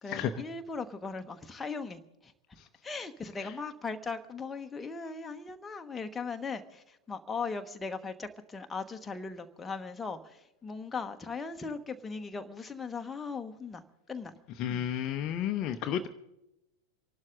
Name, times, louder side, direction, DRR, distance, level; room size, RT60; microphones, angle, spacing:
voice 1, 0.0-2.3 2.8-14.3 14.7-14.9 15.9-16.0, left 4 dB, 10° left, 5 dB, 1.1 m, -39 dB
voice 2, 14.6-16.1, left 10 dB, 35° left, 8 dB, 0.8 m, -31 dB
27.5 x 12.0 x 3.8 m, 0.91 s
figure-of-eight pair, 90°, 0 cm